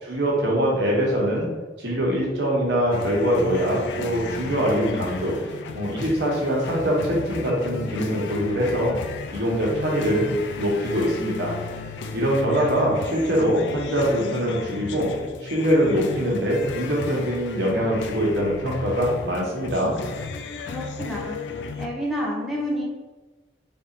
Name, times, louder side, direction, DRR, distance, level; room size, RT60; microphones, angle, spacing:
voice 1, 0.0-1.5 1.8-5.3 5.7-8.9 9.3-11.5 12.1-15.1 15.4-20.0, equal, 80° right, -3 dB, 1.2 m, -23 dB
sound 1, 2.9-21.9, left 4 dB, 85° left, 0.3 m, -35 dB
voice 2, 20.7-21.4 21.8-22.8, equal, ahead, -4 dB, 0.6 m, -29 dB
3.5 x 2.7 x 4.0 m, 1.2 s
head